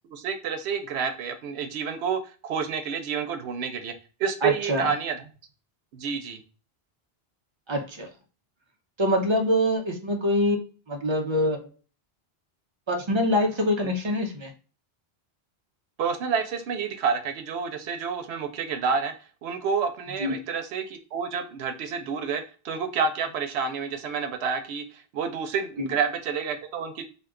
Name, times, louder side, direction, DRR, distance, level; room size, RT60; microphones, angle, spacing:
voice 1, 0.1-3.9 4.2-5.2 5.9-6.4 16.0-19.1 19.4-27.0, right 6 dB, 90° right, 7 dB, 0.8 m, -29 dB
voice 2, 4.4-4.9 7.7-8.1 9.0-10.6 10.9-11.6 12.9-14.5 20.2-20.3 25.8-25.9, left 1 dB, 35° right, 3 dB, 0.5 m, -24 dB
2.5 x 2.2 x 3.6 m, 0.37 s
omnidirectional pair, 1.1 m